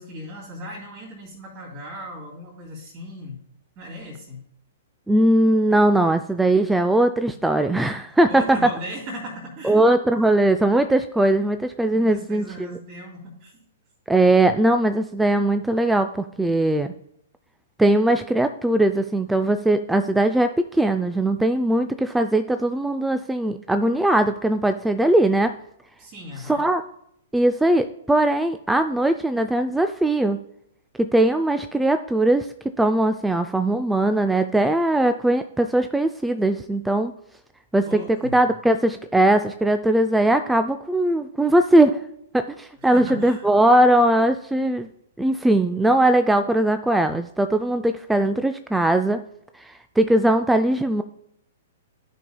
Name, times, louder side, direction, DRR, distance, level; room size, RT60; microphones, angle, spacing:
voice 1, 0.0-3.4 3.8-4.4 8.3-9.9 11.9-13.6 26.0-26.7 37.8-38.4 42.8-43.4, equal, 35° right, -4 dB, 2.5 m, -37 dB
voice 2, 5.1-8.7 9.6-12.4 14.1-16.9 17.8-25.6 26.5-26.8 27.3-30.4 31.0-32.5 32.8-37.1 37.7-38.0 38.3-42.0 42.3-44.9 45.2-49.2 49.6-51.0, right 1 dB, 5° right, 8 dB, 0.3 m, -20 dB
13.0 x 5.4 x 2.2 m, 0.72 s
figure-of-eight pair, 110°, 0 cm